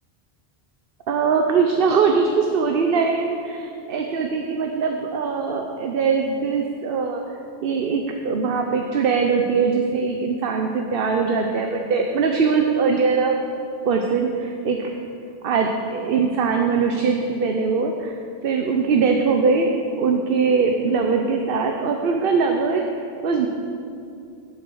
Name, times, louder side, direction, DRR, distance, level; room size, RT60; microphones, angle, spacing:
voice 1, 1.1-7.2 7.6-13.4 13.8-14.9 15.4-18.2 18.4-19.7 20.0-22.8 23.2-23.5, right 5 dB, 65° right, 3 dB, 0.9 m, -21 dB
11.5 x 8.6 x 6.3 m, 2.5 s
omnidirectional pair, 1.1 m